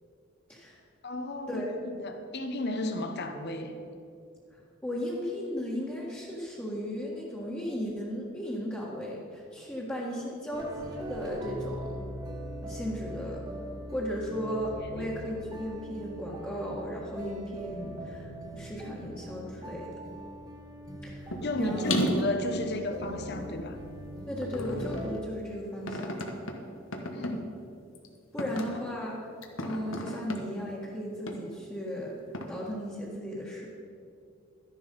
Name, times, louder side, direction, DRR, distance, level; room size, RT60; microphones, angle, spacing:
voice 1, 1.0-3.7 14.8-15.1 21.4-23.8 27.1-27.6, left 2 dB, 55° left, 6 dB, 1.1 m, -34 dB
voice 2, 4.5-11.9 12.6-13.4 13.9-19.9 21.0-21.3 21.5-21.9 24.3-26.2 28.3-29.2 29.6-32.2 32.5-33.7, equal, 10° left, -7 dB, 1.6 m, -36 dB
sound 1, 10.5-25.1, equal, 20° right, 1.6 m, -41 dB
sound 2, 21.3-21.5 21.8-23.7 24.4-25.2 25.9-26.5 26.9-27.3 27.9-28.1 28.4-28.8 29.4-30.4 31.3-31.4 32.3-32.4, left 1 dB, 75° left, 1.3 m, -32 dB
12.5 x 10.5 x 5.4 m, 2.5 s
head